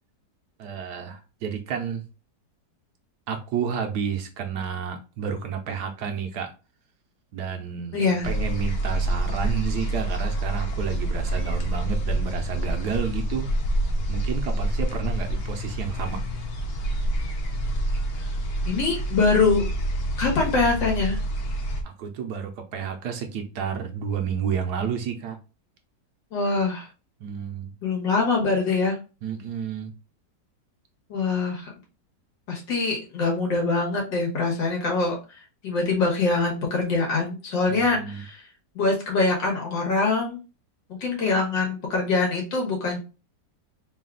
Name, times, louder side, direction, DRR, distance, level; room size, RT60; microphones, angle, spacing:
voice 1, 0.6-2.0 3.3-6.5 7.3-13.5 14.1-16.2 21.8-25.4 27.2-27.7 29.2-29.9 37.7-38.2, right 7 dB, 70° right, 5 dB, 1.1 m, -30 dB
voice 2, 7.9-8.3 18.7-19.6 20.2-21.2 26.3-26.9 27.8-29.0 31.1-31.7 32.5-38.5 38.8-40.4 40.9-43.0, left 3 dB, 85° left, -1 dB, 2.1 m, -24 dB
sound 1, 8.2-21.8, right 1 dB, 55° left, 0.7 m, -27 dB
4.0 x 2.4 x 3.7 m, 0.32 s
omnidirectional pair, 1.9 m